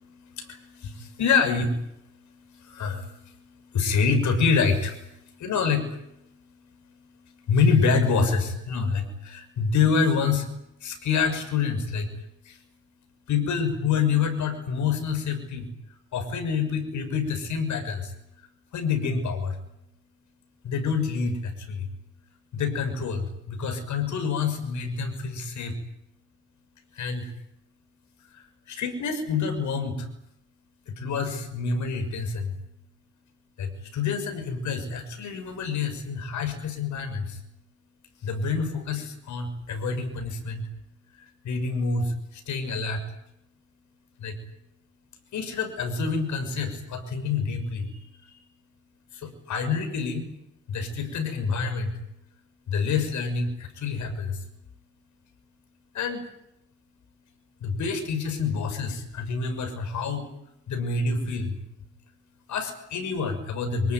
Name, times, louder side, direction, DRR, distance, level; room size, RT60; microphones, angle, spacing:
voice 1, 0.0-10.5 10.8-12.1 12.4-12.6 13.3-18.1 18.7-19.6 20.6-21.9 22.5-25.8 26.9-27.3 28.3-30.1 30.9-32.6 33.6-37.4 38.2-40.6 41.2-43.0 44.2-44.4 45.3-48.4 49.1-50.3 50.7-52.0 52.7-54.4 55.9-56.3 57.6-60.3 60.7-61.6 62.5-63.9, left 5 dB, 70° left, 7 dB, 6.3 m, -27 dB
25.5 x 20.0 x 9.5 m, 0.80 s
cardioid pair, 90°, 30 cm